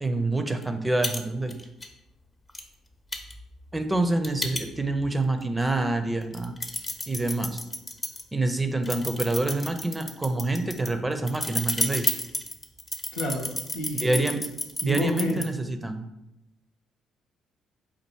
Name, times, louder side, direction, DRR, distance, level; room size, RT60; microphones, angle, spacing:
voice 1, 0.0-1.5 3.7-6.6 7.1-7.6 8.3-12.0 13.9-14.4 14.8-16.0, right 2 dB, 15° right, 7 dB, 0.6 m, -27 dB
sound 1, 0.6-0.7 1.0-1.2 1.5-1.9 2.5-2.6 3.1-5.1 5.6-5.7 6.2-8.2 8.8-15.4, left 2 dB, 25° left, 0.7 m, -31 dB
voice 2, 13.1-13.5 13.7-14.2 14.8-15.4, left 1 dB, 90° left, -2 dB, 0.8 m, -29 dB
4.3 x 2.5 x 4.5 m, 0.89 s
hypercardioid pair, 50°, 0 cm